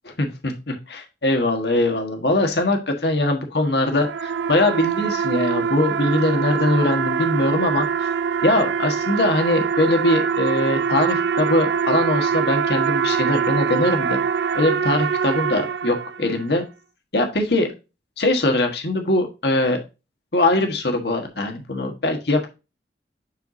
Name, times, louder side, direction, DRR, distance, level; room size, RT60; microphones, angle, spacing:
voice 1, 0.0-8.1 8.4-14.2 14.5-16.6 17.1-17.7 18.2-19.8 20.3-22.5, left 2 dB, 65° left, 4 dB, 1.5 m, -21 dB
sound 1, 3.7-16.4, right 6 dB, 80° right, 0.5 m, -24 dB
10.5 x 4.6 x 2.7 m, 0.28 s
head